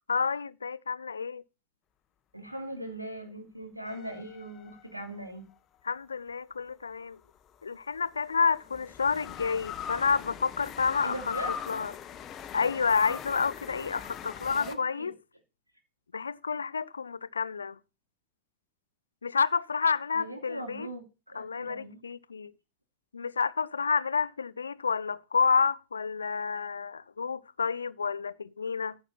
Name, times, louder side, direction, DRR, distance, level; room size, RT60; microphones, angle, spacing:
voice 1, 0.1-1.4 5.8-7.2 7.6-11.2 11.5-11.9 12.5-15.1 16.1-17.8 19.2-20.9 21.3-22.5 23.1-29.0, left 5 dB, 75° left, 0.5 m, -29 dB
voice 2, 2.3-5.4 11.0-11.5 14.5-15.1 20.1-22.0, right 1 dB, 85° right, 2.9 m, -40 dB
sound 1, 3.8-5.3 7.2-14.7, left 8 dB, 30° left, 1.0 m, -41 dB
14.0 x 5.8 x 5.6 m
figure-of-eight pair, 90°, 0 cm